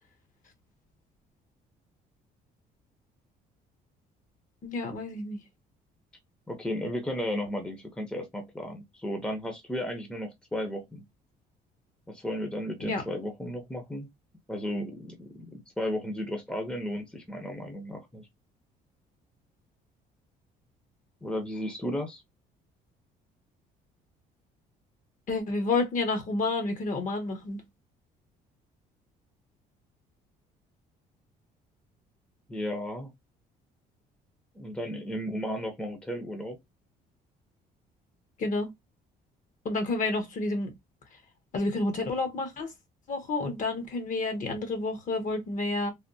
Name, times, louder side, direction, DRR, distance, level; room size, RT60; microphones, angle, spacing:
voice 1, 4.6-5.4 12.8-13.0 25.3-27.6 38.4-38.7 39.6-40.7 41.5-42.7 43.1-45.9, left 3 dB, 50° left, 1.1 m, -30 dB
voice 2, 6.5-11.0 12.1-14.1 14.5-18.3 21.2-22.2 32.5-33.1 34.5-36.6, equal, 5° left, 0.7 m, -34 dB
3.4 x 2.3 x 2.6 m
cardioid pair, 110°, 17 cm